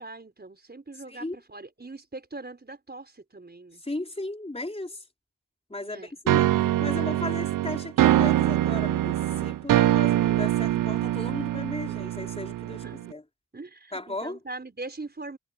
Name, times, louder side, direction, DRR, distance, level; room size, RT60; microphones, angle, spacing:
voice 1, 0.0-3.8 5.8-6.1 11.8-11.9 12.8-13.0 13.5-15.4, right 3 dB, 30° right, 5.5 m, -42 dB
voice 2, 3.8-5.0 5.7-6.5 6.8-13.2 13.9-14.4, left 2 dB, 20° left, 4.2 m, -36 dB
sound 1, 6.3-13.1, right 13 dB, 85° right, 0.5 m, -24 dB
cardioid pair, 60°, 32 cm